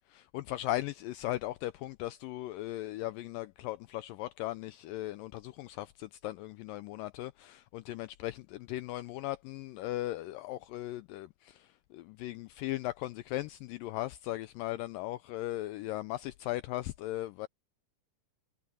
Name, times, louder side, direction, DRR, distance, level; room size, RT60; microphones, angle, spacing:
voice 1, 0.1-17.5, left 16 dB, 85° left, 2.0 m, -38 dB
omnidirectional pair, 4.4 m